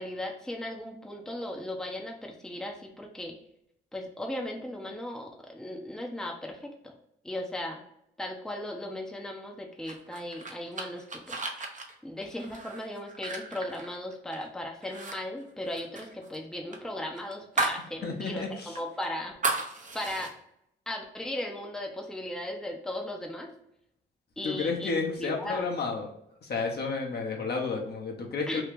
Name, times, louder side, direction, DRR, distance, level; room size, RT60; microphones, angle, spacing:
voice 1, 0.0-3.3 3.9-6.9 7.2-7.8 8.2-11.5 12.0-19.3 19.9-20.3 20.9-23.5 24.4-24.9 25.2-25.7 28.5-28.6, left 1 dB, 5° left, 1 dB, 0.7 m, -37 dB
sound 1, 9.9-14.5 14.8-15.2 15.4-17.9 18.2-18.3 18.7-20.3, right 3 dB, 40° right, 0.8 m, -34 dB
voice 2, 18.0-18.8 24.4-26.1 26.4-28.6, left 4 dB, 50° left, 0 dB, 1.0 m, -31 dB
3.0 x 2.4 x 3.5 m, 0.76 s
supercardioid pair, 55°, 20 cm